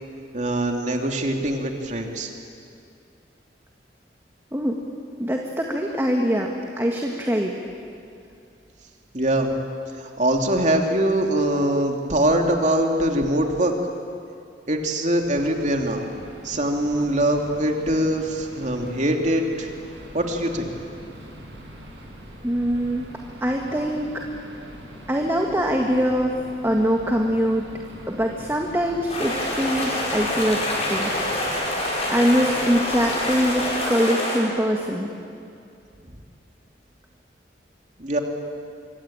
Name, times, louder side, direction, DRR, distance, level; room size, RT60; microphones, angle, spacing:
voice 1, 0.3-2.3 9.1-9.5 10.0-13.7 14.7-16.1 16.4-19.7 20.1-20.7 38.0-38.2, right 1 dB, 45° right, 3 dB, 2.9 m, -23 dB
voice 2, 5.2-7.5 22.4-23.1 23.4-24.2 25.1-27.7 28.1-31.1 31.7-31.8 32.1-35.1, equal, 15° right, 1 dB, 1.8 m, -23 dB
sound 1, 15.2-33.8, equal, 90° right, 6.8 m, -42 dB
sound 2, 29.1-34.4, left 1 dB, 40° left, 7.7 m, -26 dB
25.5 x 24.5 x 8.9 m, 2.5 s
head